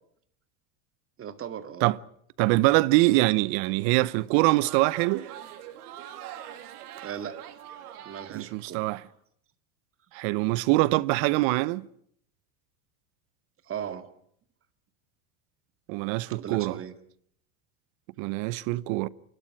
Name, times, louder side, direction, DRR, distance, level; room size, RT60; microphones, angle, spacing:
voice 1, 1.2-1.9 7.0-7.4 8.0-8.9 13.7-14.1 16.3-16.9, right 9 dB, 30° right, 2.1 m, -37 dB
voice 2, 2.4-5.3 8.3-9.0 10.1-11.8 15.9-16.8 18.2-19.1, right 20 dB, 60° right, 1.0 m, -24 dB
Crowd, 4.2-9.0, right 11 dB, 85° right, 3.1 m, -43 dB
28.0 x 12.5 x 9.9 m
supercardioid pair, 130°, 44 cm